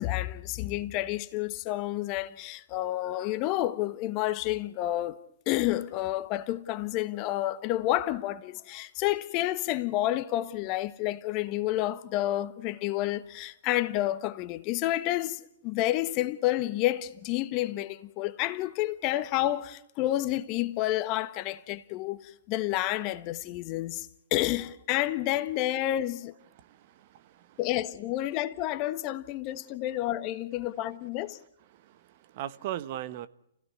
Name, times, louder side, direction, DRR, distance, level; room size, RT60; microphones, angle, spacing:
voice 1, 0.0-5.2 5.5-26.3 27.6-31.4, left 15 dB, 35° left, 1.3 m, -30 dB
voice 2, 26.5-27.6 31.7-33.3, right 12 dB, 45° right, 1.1 m, -39 dB
29.5 x 16.0 x 9.6 m
hypercardioid pair, 125°, 0 cm